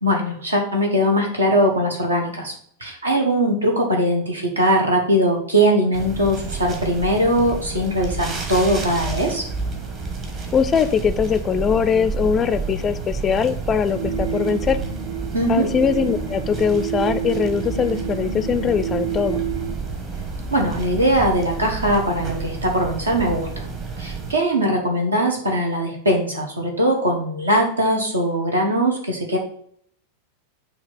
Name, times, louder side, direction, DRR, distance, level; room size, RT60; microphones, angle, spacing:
voice 1, 0.0-2.5 2.8-9.4 15.3-15.7 20.5-23.6 24.0-29.4, equal, 75° right, 2 dB, 1.3 m, -20 dB
sound 1, 5.9-24.3, right 4 dB, 35° right, 1.3 m, -30 dB
voice 2, 10.5-14.8 15.5-19.4, left 7 dB, 25° left, 12 dB, 0.4 m, -21 dB
sound 2, 13.9-19.8, right 9 dB, 55° right, 1.2 m, -29 dB
6.5 x 2.9 x 5.7 m, 0.64 s
figure-of-eight pair, 90°, 0 cm